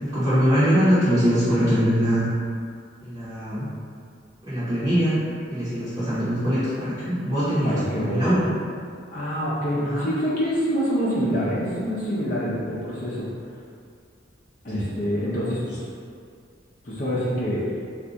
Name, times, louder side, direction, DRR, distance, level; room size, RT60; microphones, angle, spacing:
voice 1, 0.0-2.3 3.0-3.7 4.4-5.2 5.5-8.5 9.8-10.1 14.7-14.9, equal, 20° right, -14 dB, 0.8 m, -22 dB
voice 2, 7.6-8.4 9.1-13.3 14.6-15.8 16.8-17.6, equal, 45° left, -8 dB, 0.6 m, -26 dB
2.6 x 2.3 x 3.9 m, 2.3 s
head